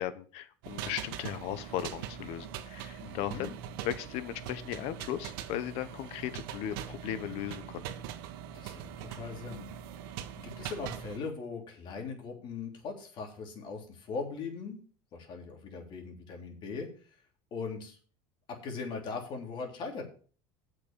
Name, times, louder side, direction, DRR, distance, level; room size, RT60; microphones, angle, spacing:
voice 1, 0.0-3.6 3.8-7.8, left 11 dB, 60° left, 13 dB, 1.2 m, -37 dB
sound 1, 0.6-11.2, right 10 dB, 80° right, 1.4 m, -42 dB
voice 2, 3.0-3.5 8.5-9.7 10.4-14.8 15.1-16.9 17.5-18.0 18.6-20.0, left 4 dB, 45° left, 3 dB, 3.4 m, -40 dB
8.4 x 6.3 x 7.5 m, 0.41 s
cardioid pair, 140°, 12 cm